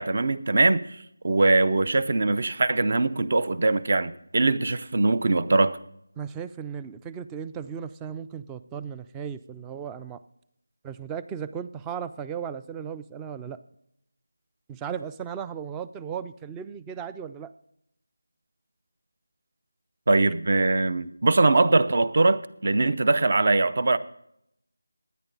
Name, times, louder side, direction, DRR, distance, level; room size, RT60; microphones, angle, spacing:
voice 1, 0.0-5.8 20.1-24.0, right 2 dB, 45° right, 14 dB, 0.7 m, -22 dB
voice 2, 6.2-10.2 10.8-13.6 14.7-17.5, right 7 dB, 10° right, 11 dB, 0.3 m, -36 dB
16.0 x 10.0 x 4.0 m, 0.75 s
figure-of-eight pair, 170°, 0 cm